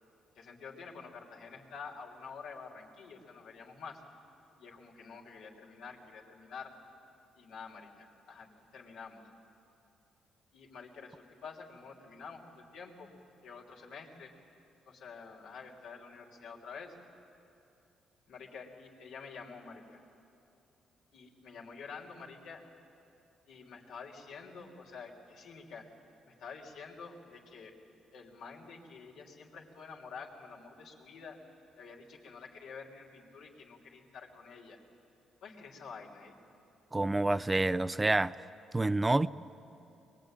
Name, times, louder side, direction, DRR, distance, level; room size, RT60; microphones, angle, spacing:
voice 1, 0.3-4.0 4.6-6.7 7.3-9.2 10.5-13.1 13.4-14.3 14.9-16.9 18.3-20.0 21.1-22.6 23.5-25.9 26.2-27.7 28.1-31.4 31.8-34.8 35.4-36.3, left 5 dB, 80° left, -1 dB, 3.4 m, -48 dB
voice 2, 36.9-38.3 38.7-39.3, right 2 dB, 20° right, 15 dB, 0.5 m, -28 dB
22.5 x 22.0 x 9.1 m, 2.7 s
cardioid pair, 90°, 0 cm